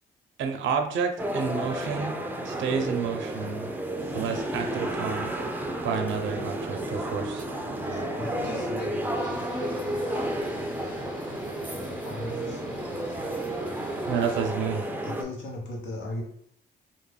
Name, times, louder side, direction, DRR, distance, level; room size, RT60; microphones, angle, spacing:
voice 1, 0.4-2.2 2.4-3.7 4.1-5.3 5.8-7.4 14.1-14.9, right 6 dB, 75° right, 5 dB, 0.4 m, -30 dB
sound 1, 1.2-15.2, right 1 dB, 10° right, 0.3 m, -32 dB
sound 2, 4.0-14.0, equal, 15° left, 0.9 m, -42 dB
voice 2, 7.8-8.5 11.7-12.6 15.0-16.2, left 1 dB, 85° left, 0 dB, 0.8 m, -37 dB
voice 3, 8.4-11.2 12.9-13.9, equal, 55° left, -4 dB, 1.1 m, -40 dB
sound 3, 9.2-14.5, left 1 dB, 40° left, 0.9 m, -49 dB
2.2 x 2.1 x 3.2 m, 0.67 s
cardioid pair, 90°, 20 cm